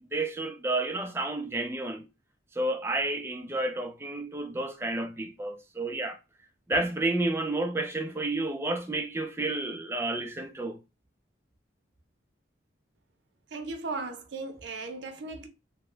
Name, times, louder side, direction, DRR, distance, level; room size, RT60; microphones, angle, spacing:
voice 1, 0.1-2.0 2.6-6.2 6.7-10.8, right 2 dB, 15° right, 0.4 m, -30 dB
voice 2, 13.5-15.5, right 3 dB, 70° right, 0.6 m, -37 dB
2.8 x 2.2 x 3.2 m
head